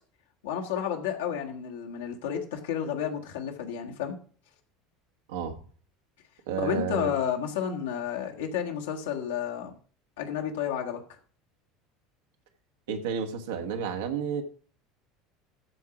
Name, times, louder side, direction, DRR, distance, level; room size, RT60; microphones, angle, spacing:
voice 1, 0.4-4.2 6.6-9.7 10.2-11.0, left 8 dB, 65° left, 1.6 m, -31 dB
voice 2, 6.5-7.1 12.9-14.4, right 7 dB, 65° right, 1.3 m, -31 dB
14.0 x 4.8 x 5.9 m
figure-of-eight pair, 70°, 0 cm